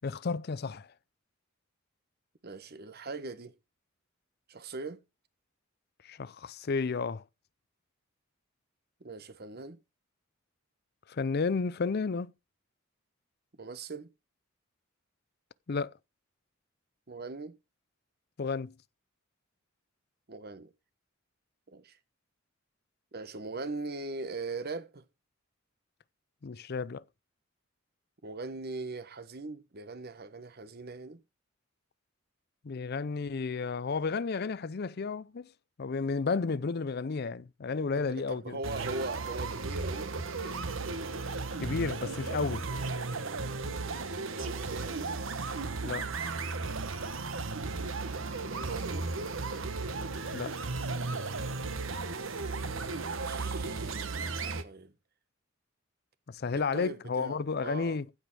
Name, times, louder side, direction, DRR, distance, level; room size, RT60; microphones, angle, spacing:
voice 1, 0.0-0.9 6.0-7.2 11.1-12.3 15.7-15.9 18.4-18.7 26.4-27.0 32.6-35.5 35.8-38.6 41.6-42.6 45.8-46.1 50.3-50.6 56.3-58.1, left 4 dB, 50° left, 0.5 m, -32 dB
voice 2, 2.4-3.5 4.5-5.0 9.0-9.8 13.6-14.1 17.1-17.5 20.3-20.7 21.7-22.0 23.1-25.0 28.2-31.2 37.9-40.1 44.1-45.1 48.5-49.1 53.2-54.9 56.5-58.0, right 3 dB, 50° right, 1.2 m, -40 dB
sound 1, 38.6-54.6, right 3 dB, 70° right, 1.2 m, -35 dB
15.5 x 5.1 x 6.1 m
head